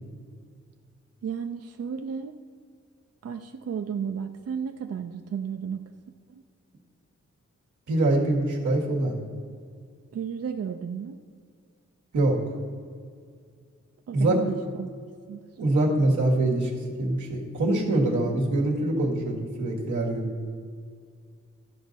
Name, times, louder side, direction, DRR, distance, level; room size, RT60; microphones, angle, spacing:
voice 1, 1.2-2.4 3.2-5.8 6.3-6.4 10.1-11.2 14.1-14.9 15.3-15.4, right 7 dB, 55° right, 6 dB, 0.5 m, -33 dB
voice 2, 7.9-9.1 12.1-12.4 14.1-14.4 15.6-16.7 17.0-20.3, right 2 dB, 90° right, -2 dB, 1.8 m, -24 dB
13.0 x 5.3 x 4.0 m, 2.1 s
cardioid pair, 55°, 29 cm